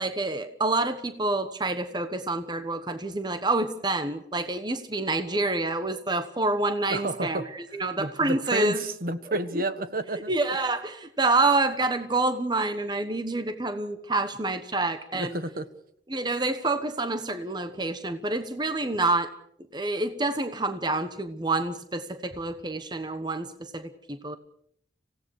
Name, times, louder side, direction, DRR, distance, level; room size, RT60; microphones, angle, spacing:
voice 1, 0.0-7.4 7.7-8.8 10.3-15.3 16.1-19.3 19.7-24.4, right 2 dB, 25° right, 9 dB, 1.2 m, -27 dB
voice 2, 6.9-10.6 15.1-15.7, right 2 dB, 50° right, 11 dB, 1.4 m, -31 dB
26.0 x 17.0 x 6.5 m, 0.69 s
head